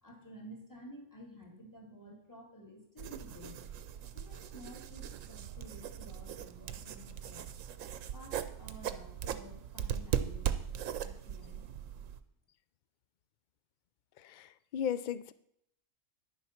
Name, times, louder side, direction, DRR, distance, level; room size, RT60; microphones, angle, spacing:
voice 1, 0.0-3.6 4.1-7.5 8.1-10.7 11.0-11.6, equal, 15° left, 0 dB, 2.4 m, -52 dB
sound 1, 3.0-12.2, right 9 dB, 80° right, 1.1 m, -39 dB
voice 2, 14.2-15.3, left 8 dB, 60° left, 15 dB, 0.5 m, -36 dB
10.5 x 7.1 x 5.8 m, 0.72 s
omnidirectional pair, 1.3 m